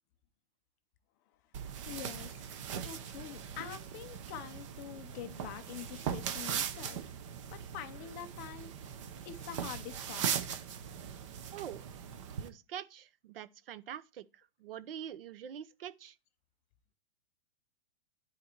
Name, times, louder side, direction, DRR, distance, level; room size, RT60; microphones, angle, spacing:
sound 1, 1.5-12.5, right 8 dB, 35° right, 0.7 m, -40 dB
voice 1, 1.9-2.3 2.7-7.1 7.5-8.7 9.2-10.6, left 10 dB, 20° left, 0.5 m, -45 dB
voice 2, 11.5-11.8 12.4-16.2, right 9 dB, 70° right, 0.8 m, -45 dB
11.0 x 4.4 x 4.4 m
supercardioid pair, 175°, 29 cm